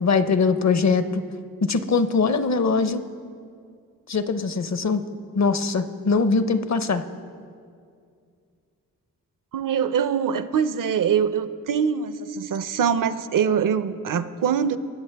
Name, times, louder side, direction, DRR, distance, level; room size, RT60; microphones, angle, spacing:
voice 1, 0.0-1.2 1.6-3.0 4.1-5.0 5.3-7.0, left 4 dB, 50° left, 12 dB, 0.7 m, -22 dB
voice 2, 9.5-14.8, right 7 dB, 65° right, 13 dB, 0.6 m, -23 dB
21.5 x 7.9 x 3.4 m, 2.3 s
cardioid pair, 45°, 35 cm